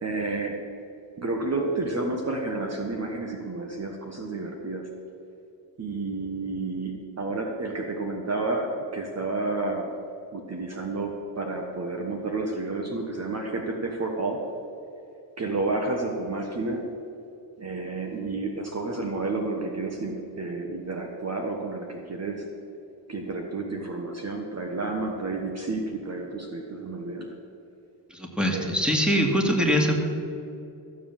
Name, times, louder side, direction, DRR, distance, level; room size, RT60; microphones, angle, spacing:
voice 1, 0.0-0.6 1.2-4.9 5.8-9.9 10.3-14.4 15.4-16.9 17.6-22.4 23.1-27.3 28.5-28.7, right 3 dB, 35° right, 2 dB, 1.4 m, -30 dB
voice 2, 28.1-30.0, equal, ahead, 1 dB, 2.3 m, -23 dB
14.5 x 7.7 x 7.2 m, 2.8 s
cardioid pair, 90°, 45 cm